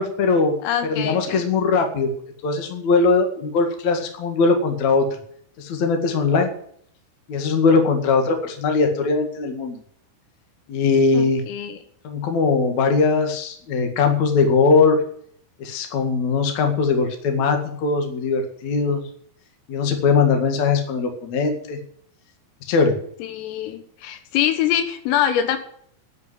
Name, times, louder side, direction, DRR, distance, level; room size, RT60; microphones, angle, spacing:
voice 1, 0.0-0.6 0.9-2.1 2.4-5.1 5.6-6.5 7.3-9.8 10.7-11.4 12.0-15.0 15.6-19.0 19.7-21.8 22.7-23.0, left 4 dB, 50° left, 4 dB, 2.5 m, -20 dB
voice 2, 0.6-1.5 11.1-11.8 23.2-25.6, left 10 dB, 90° left, 8 dB, 4.1 m, -24 dB
11.5 x 7.4 x 9.4 m, 0.62 s
omnidirectional pair, 5.8 m